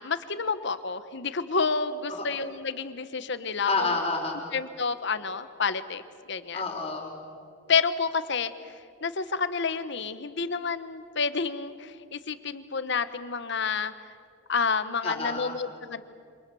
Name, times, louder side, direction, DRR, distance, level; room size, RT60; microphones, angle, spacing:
voice 1, 0.0-3.9 4.5-6.0 6.3-6.6 7.7-8.7 9.0-13.9 14.5-16.0, left 5 dB, 65° left, 12 dB, 1.3 m, -29 dB
voice 2, 3.7-4.5 6.5-7.2 15.0-15.6, left 3 dB, 30° left, 1 dB, 4.5 m, -29 dB
28.5 x 26.0 x 7.2 m, 2.2 s
head